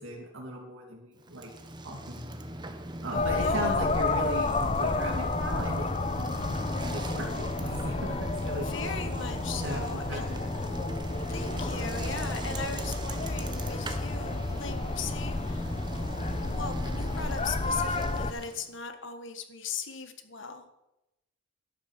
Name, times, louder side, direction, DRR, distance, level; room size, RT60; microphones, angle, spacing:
voice 1, 0.0-1.5 1.8-2.3 3.0-6.5 6.8-8.7 9.6-10.4, right 1 dB, 60° right, -2 dB, 2.8 m, -37 dB
Bicycle, 1.2-18.8, right 1 dB, 20° right, 1.1 m, -40 dB
voice 2, 3.1-3.9 8.6-10.4 11.3-20.8, left 5 dB, 55° left, 8 dB, 1.5 m, -39 dB
sound 1, 3.1-18.3, left 3 dB, 25° left, 0.7 m, -31 dB
12.0 x 10.0 x 7.4 m, 0.92 s
head